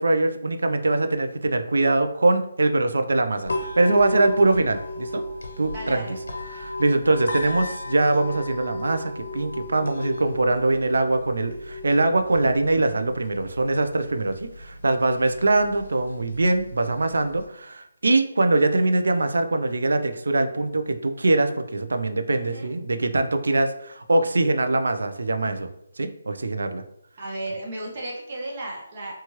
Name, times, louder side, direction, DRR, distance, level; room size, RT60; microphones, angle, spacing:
voice 1, 0.0-5.2 5.6-6.1 6.5-25.7 26.0-26.8, right 2 dB, 75° right, 8 dB, 0.3 m, -22 dB
sound 1, 3.4-17.4, left 1 dB, 80° left, 0.6 m, -34 dB
voice 2, 5.7-6.2 22.3-22.7 27.2-29.1, right 1 dB, 25° right, -2 dB, 0.5 m, -34 dB
2.9 x 2.2 x 2.9 m, 0.76 s
hypercardioid pair, 180°, 0 cm